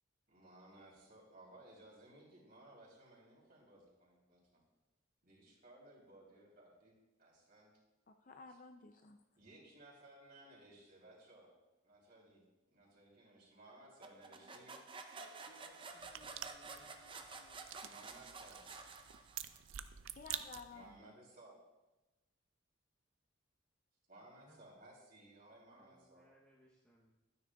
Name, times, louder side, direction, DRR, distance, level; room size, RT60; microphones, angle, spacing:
voice 1, 0.3-4.6 5.2-7.7 9.4-11.5 11.8-14.8 17.8-18.6 20.7-21.6 24.1-26.3, right 1 dB, 45° right, -4 dB, 3.0 m, -60 dB
voice 2, 8.1-9.2 20.1-21.1, left 4 dB, 40° left, 6 dB, 0.4 m, -54 dB
sound 1, 14.0-19.7, right 4 dB, 25° right, 0.5 m, -51 dB
voice 3, 14.1-17.6, left 1 dB, 65° left, -1 dB, 1.7 m, -67 dB
sound 2, 16.0-21.0, right 11 dB, 75° right, 0.4 m, -49 dB
voice 4, 24.3-24.7 25.6-27.1, equal, 5° left, -5 dB, 0.8 m, -68 dB
12.5 x 9.6 x 2.3 m, 1.1 s
head